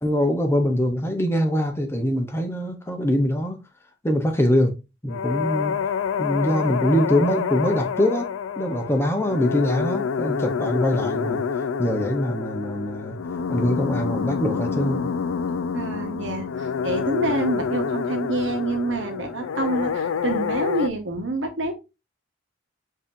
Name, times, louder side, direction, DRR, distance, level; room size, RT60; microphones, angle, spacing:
voice 1, 0.0-3.6 4.0-4.8 5.0-5.8 6.2-8.3 8.6-11.4 11.8-13.2 13.5-15.1, equal, 10° left, 0.7 m, -23 dB
sound 1, 5.1-20.9, left 6 dB, 90° left, 0.4 m, -27 dB
voice 2, 15.7-21.7, right 2 dB, 65° right, 1.1 m, -27 dB
7.3 x 2.8 x 2.6 m
head